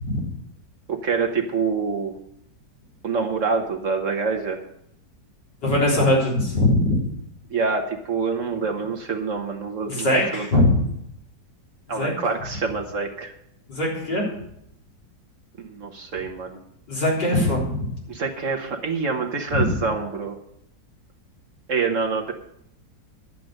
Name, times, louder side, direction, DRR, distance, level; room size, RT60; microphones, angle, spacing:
voice 1, 0.9-2.1 3.0-4.6 7.5-10.6 11.9-13.3 15.6-16.6 18.1-20.4 21.7-22.3, right 5 dB, 50° right, 3 dB, 1.3 m, -26 dB
voice 2, 5.6-7.0 9.9-10.8 12.0-12.1 13.7-14.2 16.9-17.8, left 1 dB, 75° left, -4 dB, 4.5 m, -21 dB
11.0 x 7.7 x 6.4 m, 0.75 s
omnidirectional pair, 1.9 m